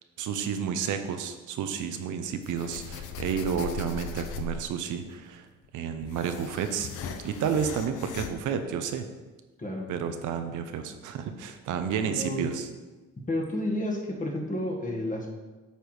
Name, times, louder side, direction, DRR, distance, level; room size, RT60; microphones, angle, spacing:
voice 1, 0.2-5.5 5.7-6.9 7.2-9.1 9.9-12.7, right 7 dB, 80° right, 7 dB, 0.8 m, -31 dB
sound 1, 2.4-4.8 5.6-8.3, left 5 dB, 85° left, 0.7 m, -38 dB
voice 2, 9.6-9.9 12.0-12.5 13.3-15.3, left 1 dB, 25° left, 1 dB, 1.6 m, -31 dB
8.2 x 4.5 x 4.9 m, 1.2 s
cardioid pair, 90°, 30 cm